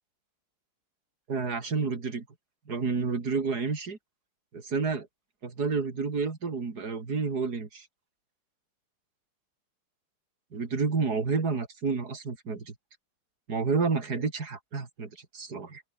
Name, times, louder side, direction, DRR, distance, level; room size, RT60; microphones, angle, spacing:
voice 1, 1.3-2.3 2.7-4.0 4.5-5.1 5.4-7.9 10.5-12.7 13.5-15.8, right 4 dB, 45° right, 3.5 m, -30 dB
open air
omnidirectional pair, 2.3 m